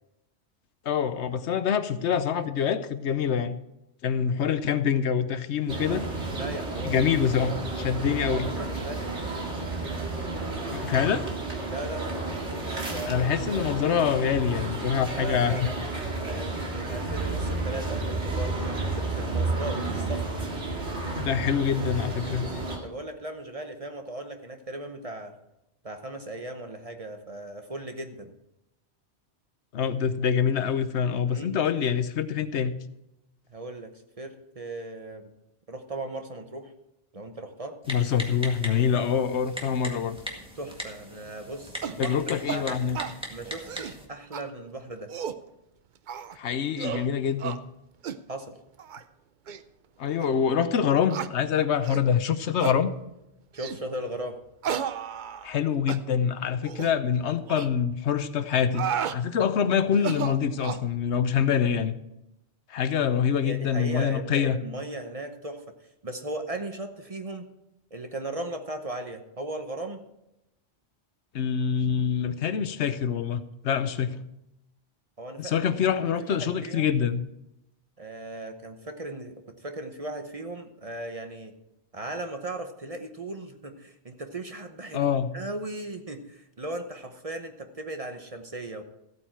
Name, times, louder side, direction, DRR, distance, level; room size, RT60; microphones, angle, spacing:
voice 1, 0.8-3.6 4.0-6.0 6.8-8.5 10.7-11.2 13.1-15.7 21.1-22.5 29.7-32.8 37.9-40.2 42.0-43.0 46.4-47.6 50.0-52.9 55.4-61.9 62.7-64.6 71.3-74.2 75.4-77.2 84.9-85.3, left 7 dB, 75° left, 12 dB, 1.0 m, -25 dB
sound 1, 5.7-22.8, right 3 dB, 85° right, 2.3 m, -31 dB
voice 2, 6.4-7.0 7.4-7.9 8.3-9.1 11.6-12.1 12.6-13.7 15.1-15.7 16.2-20.3 22.7-25.3 25.8-28.3 31.3-31.5 33.5-35.3 35.7-36.7 37.1-37.8 40.6-42.2 42.5-42.8 43.3-45.1 48.3-48.6 53.5-54.4 63.4-65.6 66.0-67.5 67.9-70.0 75.2-75.6 75.9-76.9 78.0-81.5 81.9-88.8, right 1 dB, 35° right, 6 dB, 0.9 m, -37 dB
Typing, 37.8-44.0, equal, 5° right, 1.7 m, -40 dB
sound 2, 41.8-42.0 42.5-42.6 42.9-43.2 43.6-44.0 44.3-44.4 44.9-45.4 46.1-46.4 46.8-47.1 47.4-47.6 48.0-48.2 48.8-49.0 49.5-49.6 50.2-50.3 51.1-51.3 51.8-52.1 52.6-52.8 53.6-53.8 54.6-55.6 55.9-56.0 56.6-56.9 57.5-57.7 58.5-59.2 59.9-60.9, right 8 dB, 55° right, 0.6 m, -33 dB
14.5 x 8.8 x 4.5 m, 0.87 s
omnidirectional pair, 1.2 m